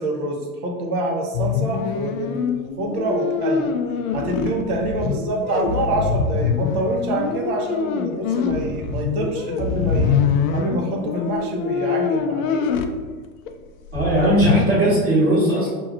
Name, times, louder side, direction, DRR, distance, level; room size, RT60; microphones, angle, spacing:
voice 1, 0.0-3.7 4.1-10.2 10.5-12.7, right 1 dB, 70° right, 1 dB, 1.0 m, -26 dB
sound 1, 1.3-12.9 13.5-13.6 13.9-14.6, left 6 dB, 60° left, 0.5 m, -24 dB
voice 2, 13.9-15.7, right 1 dB, 30° right, -9 dB, 1.2 m, -18 dB
5.2 x 2.6 x 2.4 m, 1.5 s
hypercardioid pair, 125°, 46 cm